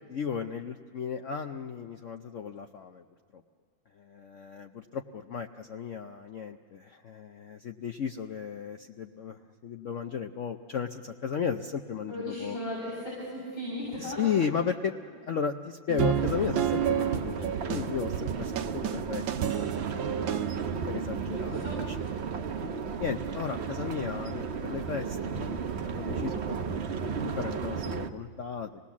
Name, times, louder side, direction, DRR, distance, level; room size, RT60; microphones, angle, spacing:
voice 1, 0.1-3.0 4.1-12.6 14.0-14.9 15.2-20.3 20.9-22.0 23.0-28.7, left 7 dB, 90° left, 5 dB, 0.6 m, -35 dB
voice 2, 12.1-14.3 21.3-21.7, left 1 dB, 65° left, -7 dB, 7.4 m, -36 dB
sound 1, 15.9-20.8, right 9 dB, 80° right, 1.5 m, -30 dB
sound 2, 16.1-28.1, right 6 dB, 55° right, 0.7 m, -34 dB
26.0 x 19.0 x 7.2 m, 2.3 s
omnidirectional pair, 2.2 m